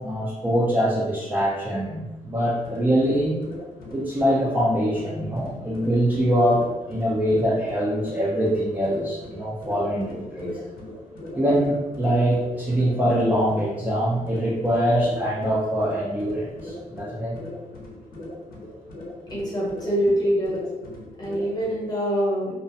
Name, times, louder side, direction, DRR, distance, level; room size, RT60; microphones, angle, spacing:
voice 1, 0.0-3.4 3.9-10.6 11.3-17.4, equal, 10° right, -8 dB, 0.3 m, -23 dB
sound 1, 2.4-21.9, left 1 dB, 70° left, 0.6 m, -40 dB
voice 2, 19.3-20.7 21.2-22.6, equal, 25° left, -6 dB, 0.9 m, -24 dB
2.4 x 2.0 x 2.6 m, 1.1 s
cardioid pair, 145°, 15 cm